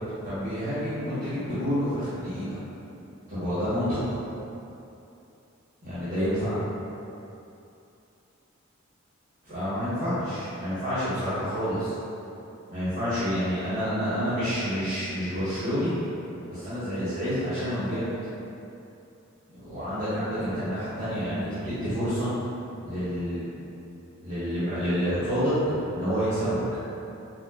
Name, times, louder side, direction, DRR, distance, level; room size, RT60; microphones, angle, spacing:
voice 1, 0.2-2.6 3.3-4.2 5.8-6.6 9.4-11.9 12.7-15.9 16.5-18.1 19.5-22.3 22.8-23.5 24.2-26.6, equal, 40° right, -16 dB, 1.2 m, -28 dB
4.8 x 2.2 x 2.3 m, 2.8 s
head